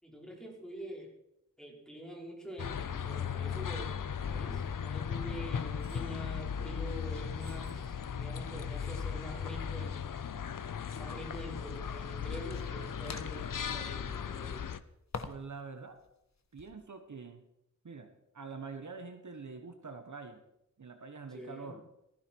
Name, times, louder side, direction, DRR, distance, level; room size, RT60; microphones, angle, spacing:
voice 1, 0.0-1.1 1.6-10.1 10.9-14.6 21.3-21.7, equal, ahead, -2 dB, 5.2 m, -46 dB
sound 1, 2.6-14.8, left 7 dB, 75° left, 0.8 m, -37 dB
sound 2, 3.6-3.9 4.2-4.3 5.2-5.3 5.8-6.2 7.3-7.8 8.3-8.4, right 1 dB, 30° right, 4.6 m, -60 dB
sound 3, 10.2-10.3 12.5-13.8 15.1-15.6 15.9-16.7, left 4 dB, 55° left, 1.4 m, -45 dB
voice 2, 15.2-16.0 16.5-17.4 17.8-20.4 20.8-21.8, right 4 dB, 65° right, 7 dB, 1.4 m, -45 dB
19.0 x 15.0 x 4.7 m, 0.83 s
wide cardioid pair, 80°, 32 cm